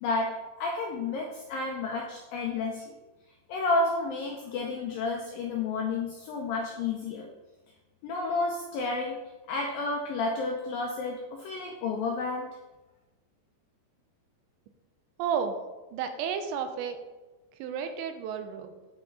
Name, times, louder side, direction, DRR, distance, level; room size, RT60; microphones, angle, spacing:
voice 1, 0.0-2.9 3.5-7.3 8.0-9.2 9.5-12.5, left 3 dB, 85° left, 0 dB, 2.0 m, -31 dB
voice 2, 15.2-15.6 15.9-17.0 17.6-18.7, right 7 dB, 85° right, 7 dB, 2.9 m, -32 dB
9.4 x 5.7 x 4.1 m, 1.1 s
omnidirectional pair, 5.1 m